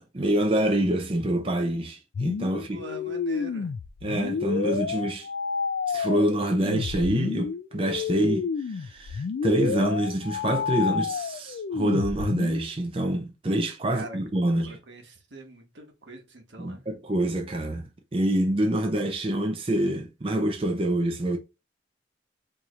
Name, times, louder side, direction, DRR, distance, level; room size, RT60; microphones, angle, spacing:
voice 1, 0.0-2.8 4.0-5.3 5.9-14.8 16.6-21.4, right 1 dB, 30° right, 0.5 m, -26 dB
sound 1, 2.1-12.7, left 5 dB, 70° left, 0.3 m, -30 dB
voice 2, 2.7-3.7 13.9-14.2 14.5-16.9, right 1 dB, 85° right, 1.2 m, -42 dB
4.6 x 2.8 x 2.4 m
head